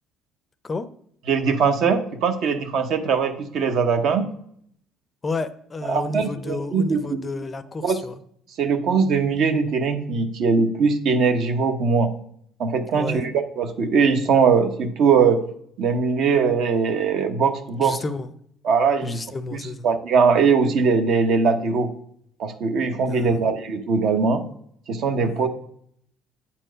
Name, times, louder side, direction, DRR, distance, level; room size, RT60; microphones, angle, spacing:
voice 1, 1.3-4.2 5.9-7.3 7.8-8.0 8.6-12.1 12.6-13.3 13.6-15.4 15.8-18.0 18.6-19.2 19.5-19.6 19.8-21.9 22.4-24.4 24.9-25.5, right 5 dB, 60° right, 8 dB, 0.9 m, -21 dB
voice 2, 5.2-8.2 12.9-13.3 17.8-18.3 19.0-19.9 23.1-23.5 25.2-25.5, left 3 dB, 25° left, 13 dB, 0.5 m, -31 dB
8.4 x 4.5 x 5.0 m, 0.67 s
cardioid pair, 120°, 0 cm